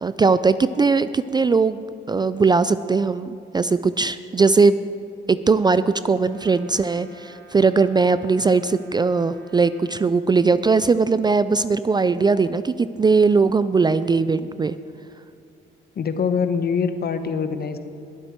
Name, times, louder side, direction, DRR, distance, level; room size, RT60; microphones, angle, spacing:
voice 1, 0.0-4.8 5.3-14.7, right 4 dB, 20° right, 14 dB, 0.3 m, -19 dB
Brass instrument, 6.2-10.2, right 4 dB, 60° right, 2.1 m, -50 dB
voice 2, 15.9-17.8, left 6 dB, 50° left, 10 dB, 1.0 m, -24 dB
21.5 x 7.7 x 4.5 m, 2.4 s
cardioid pair, 90°, 20 cm